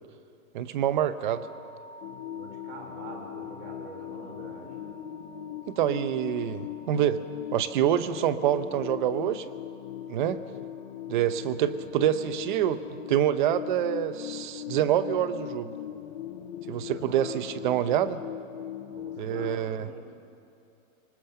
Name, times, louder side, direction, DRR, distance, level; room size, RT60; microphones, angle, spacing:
voice 1, 0.5-1.4 5.7-7.2 7.5-9.4 10.1-10.4 11.1-15.7 16.7-18.2 19.2-19.9, right 10 dB, 35° right, 13 dB, 0.8 m, -26 dB
sound 1, 1.2-15.2, left 2 dB, 70° right, 5.7 m, -53 dB
sound 2, 2.0-19.6, left 11 dB, 35° left, 0.7 m, -39 dB
voice 2, 2.3-4.8 16.7-17.4 18.7-20.1, right 3 dB, 55° right, 3 dB, 5.2 m, -45 dB
24.5 x 19.5 x 6.7 m, 2.6 s
hypercardioid pair, 165°, 41 cm